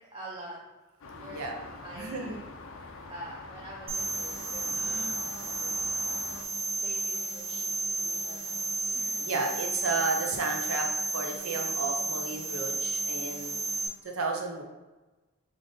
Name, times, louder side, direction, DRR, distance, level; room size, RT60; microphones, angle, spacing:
voice 1, 0.1-0.6 1.2-2.4 2.8-6.3 6.8-7.7 8.0-9.3, right 1 dB, 20° right, -4 dB, 0.5 m, -47 dB
sound 1, 1.0-6.4, left 3 dB, 70° left, 0.4 m, -45 dB
voice 2, 1.1-1.6 2.0-2.4 9.2-10.9 11.1-13.5 14.0-14.6, right 3 dB, 90° right, 2 dB, 0.6 m, -32 dB
sound 2, 3.9-13.9, right 3 dB, 40° right, 0.8 m, -32 dB
Gasp, 4.6-5.2, left 1 dB, ahead, 0.9 m, -45 dB
3.4 x 2.5 x 3.8 m, 1.1 s
head